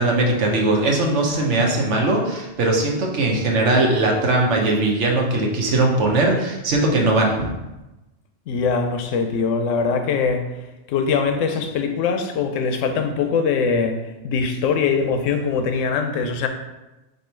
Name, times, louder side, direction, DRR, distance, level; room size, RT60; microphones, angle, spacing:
voice 1, 0.0-7.6, right 2 dB, 70° right, 0 dB, 1.1 m, -20 dB
voice 2, 8.5-10.5 10.9-14.0 14.2-16.5, left 5 dB, 80° left, 6 dB, 0.9 m, -22 dB
4.4 x 2.7 x 4.4 m, 1.0 s
omnidirectional pair, 1.3 m